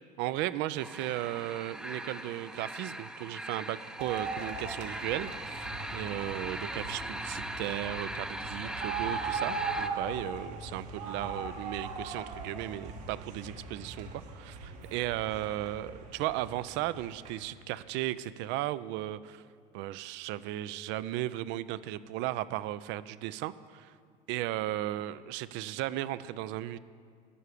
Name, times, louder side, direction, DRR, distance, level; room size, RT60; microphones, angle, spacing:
voice 1, 0.2-5.6 5.9-19.4 19.7-23.9 24.3-26.8, right 14 dB, 60° right, 16 dB, 0.5 m, -35 dB
sound 1, 0.8-9.9, right 1 dB, 5° right, 0.6 m, -40 dB
sound 2, 4.0-17.4, right 4 dB, 75° right, 1.6 m, -40 dB
11.0 x 6.6 x 8.3 m, 2.1 s
hypercardioid pair, 75°, 21 cm